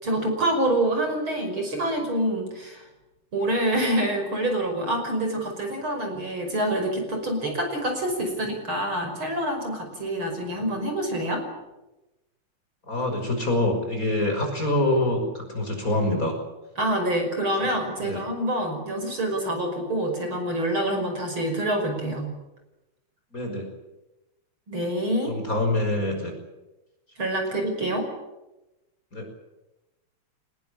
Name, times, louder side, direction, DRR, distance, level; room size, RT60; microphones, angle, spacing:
voice 1, 0.0-2.8 3.3-11.5 16.8-22.3 24.7-25.3 27.2-28.1, right 1 dB, 40° right, 4 dB, 6.3 m, -26 dB
voice 2, 12.9-16.3 18.0-18.2 23.3-23.6 25.3-26.3 29.1-29.2, left 1 dB, 25° left, 3 dB, 6.2 m, -25 dB
25.0 x 21.0 x 8.7 m, 0.99 s
omnidirectional pair, 3.4 m